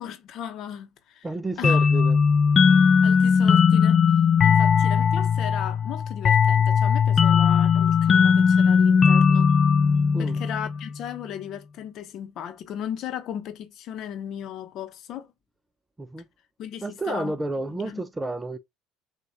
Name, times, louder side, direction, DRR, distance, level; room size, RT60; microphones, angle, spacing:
voice 1, 0.0-1.3 1.6-1.8 2.7-4.0 4.4-9.5 10.2-15.3 16.6-17.4 17.7-18.0, left 10 dB, 55° left, 0.9 m, -36 dB
voice 2, 1.2-2.2 10.1-10.4 16.0-16.2 16.8-18.6, right 2 dB, 15° right, 0.6 m, -30 dB
sound 1, 1.6-11.0, left 6 dB, 35° left, 0.4 m, -19 dB
6.3 x 2.5 x 2.9 m
supercardioid pair, 105°, 0 cm